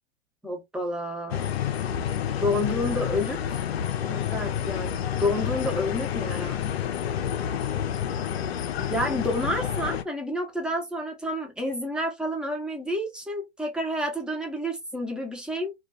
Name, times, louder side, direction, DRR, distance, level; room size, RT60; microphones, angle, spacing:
voice 1, 0.4-1.5 2.4-3.6 4.1-6.7 8.9-15.7, left 1 dB, 5° right, 0.6 m, -29 dB
sound 1, 1.3-10.0, left 9 dB, 75° left, 0.5 m, -29 dB
2.3 x 2.3 x 2.5 m
figure-of-eight pair, 105°, 32 cm